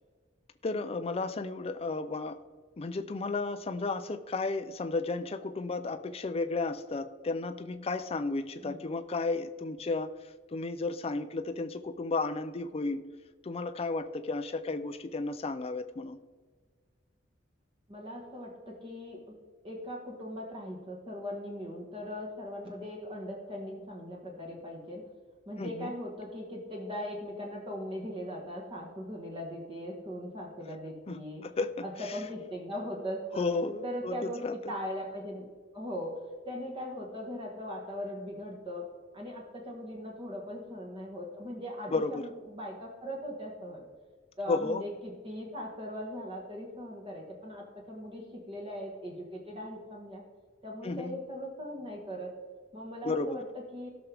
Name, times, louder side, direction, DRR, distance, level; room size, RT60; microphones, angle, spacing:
voice 1, 0.6-2.4 2.8-13.0 13.4-16.2 25.6-25.9 31.1-32.2 33.4-34.5 41.9-42.3 44.5-44.8 50.8-51.2 53.0-53.4, left 3 dB, 30° left, 8 dB, 0.4 m, -33 dB
voice 2, 17.9-19.2 19.6-25.0 25.5-31.4 31.8-33.5 33.8-35.5 35.7-36.2 36.4-38.8 39.1-43.8 44.4-50.2 50.6-52.3 52.7-53.9, equal, 30° right, -2 dB, 1.5 m, -39 dB
16.5 x 6.1 x 3.5 m, 1.5 s
head